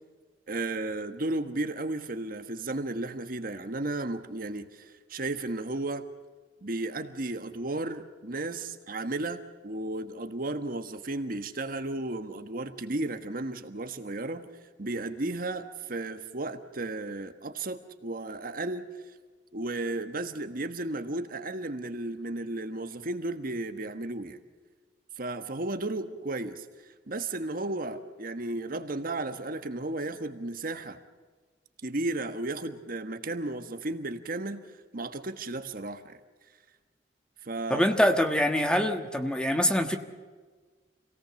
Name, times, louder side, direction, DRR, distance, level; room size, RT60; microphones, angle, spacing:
voice 1, 0.5-6.0 6.6-14.5 14.8-18.9 19.5-24.4 25.2-31.0 31.8-34.6 34.9-36.2 37.4-37.9, right 2 dB, 50° right, 8 dB, 1.4 m, -34 dB
voice 2, 37.7-40.0, equal, 5° left, 6 dB, 1.4 m, -24 dB
26.5 x 18.0 x 7.0 m, 1.4 s
head